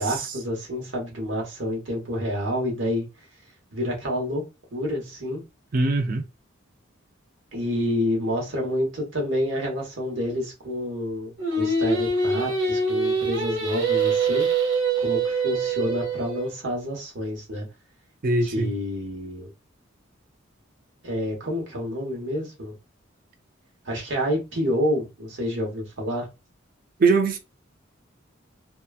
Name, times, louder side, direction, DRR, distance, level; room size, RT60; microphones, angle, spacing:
voice 1, 0.0-3.1 3.7-4.4 4.7-5.4 7.5-14.5 15.0-17.7 18.4-19.5 21.0-22.7 23.8-26.3, equal, 70° right, 1.1 m, -28 dB
voice 2, 5.7-6.2 18.2-18.7 27.0-27.4, right 3 dB, 45° right, 0.5 m, -21 dB
Singing, 11.4-16.5, right 3 dB, 85° right, 1.3 m, -24 dB
2.9 x 2.3 x 2.3 m
head